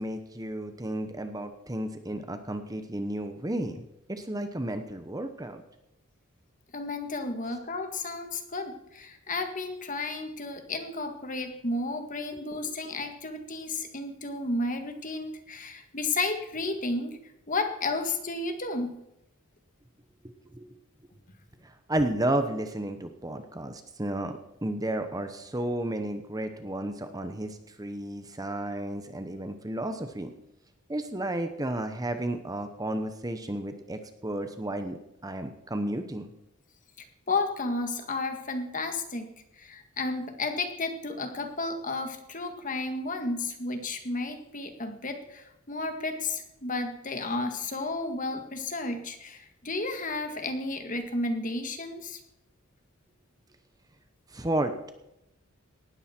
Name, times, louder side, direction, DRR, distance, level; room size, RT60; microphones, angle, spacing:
voice 1, 0.0-5.6 12.3-12.4 20.5-20.7 21.6-30.3 30.9-36.3 54.3-54.9, right 1 dB, 15° right, 8 dB, 0.9 m, -32 dB
voice 2, 6.7-17.2 17.5-18.9 37.3-39.3 39.6-52.2, left 2 dB, 40° left, 6 dB, 1.8 m, -32 dB
18.5 x 13.5 x 4.5 m, 0.87 s
head